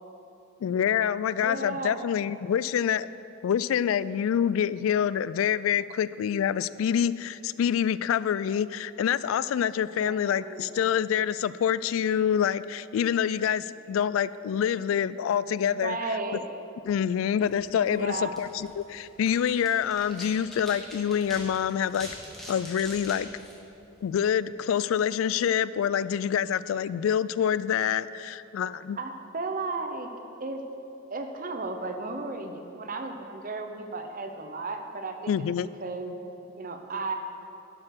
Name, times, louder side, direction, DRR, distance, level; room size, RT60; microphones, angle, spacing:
voice 1, 0.6-3.1 3.4-16.0 16.9-22.1 22.5-23.3 24.0-29.0 35.3-35.7, left 8 dB, 85° left, 18 dB, 0.3 m, -26 dB
voice 2, 1.3-2.1 10.0-10.8 15.8-16.4 17.9-18.4 29.0-30.1 30.4-30.6 31.1-35.3 35.8-36.2 36.6-37.1, right 3 dB, 45° right, 5 dB, 0.8 m, -34 dB
sound 1, 17.4-24.3, equal, ahead, 1.9 m, -46 dB
12.0 x 6.7 x 5.9 m, 2.9 s
head